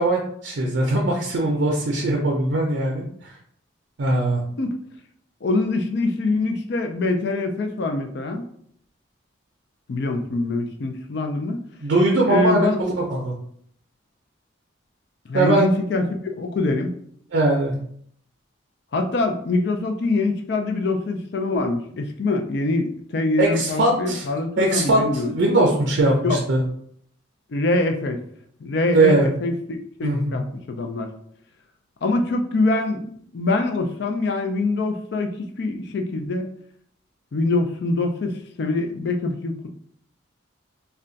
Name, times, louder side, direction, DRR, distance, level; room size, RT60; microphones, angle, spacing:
voice 1, 0.0-3.3 4.0-4.4 11.8-13.4 15.3-15.7 17.3-17.7 23.4-24.3 24.6-26.6 28.9-29.3 30.0-30.4, right 2 dB, 65° right, -2 dB, 0.5 m, -20 dB
voice 2, 5.4-8.5 9.9-11.6 12.3-12.8 15.3-16.1 16.4-17.0 18.9-25.3 26.2-26.4 27.5-28.2 28.6-29.5 30.0-31.1 32.0-33.1 33.3-36.5 37.3-39.7, left 2 dB, 55° left, 4 dB, 0.4 m, -24 dB
2.4 x 2.2 x 3.8 m, 0.65 s
head